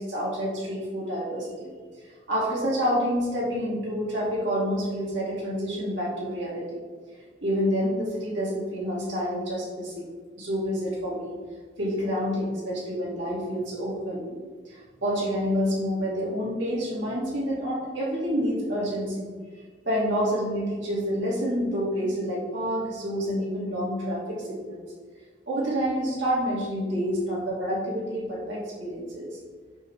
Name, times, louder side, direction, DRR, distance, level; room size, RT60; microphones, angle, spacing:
voice 1, 0.0-1.7 2.3-6.8 7.4-10.1 10.4-11.4 11.8-14.4 14.7-19.3 19.8-24.8 25.5-29.3, equal, 80° right, -7 dB, 2.6 m, -28 dB
9.0 x 3.5 x 6.5 m, 1.5 s
head